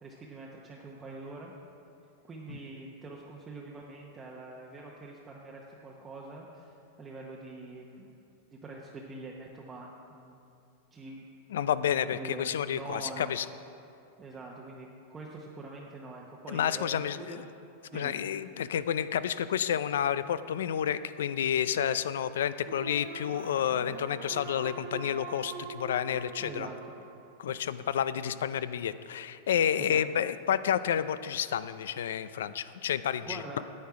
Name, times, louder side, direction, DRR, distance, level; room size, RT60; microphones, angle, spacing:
voice 1, 0.0-1.5 2.2-8.1 8.5-10.5 10.9-11.3 11.6-13.3 14.2-17.5 17.9-18.1 26.4-26.8 27.5-27.6 29.8-30.0 33.3-33.6, right 3 dB, 15° right, -3 dB, 0.8 m, -44 dB
voice 2, 11.5-13.5 16.5-17.4 17.9-26.7 27.4-33.4, left 9 dB, 85° left, 15 dB, 0.4 m, -30 dB
sound 1, 22.7-27.7, right 5 dB, 85° right, 1.1 m, -44 dB
9.4 x 8.7 x 4.8 m, 2.6 s
supercardioid pair, 145°, 0 cm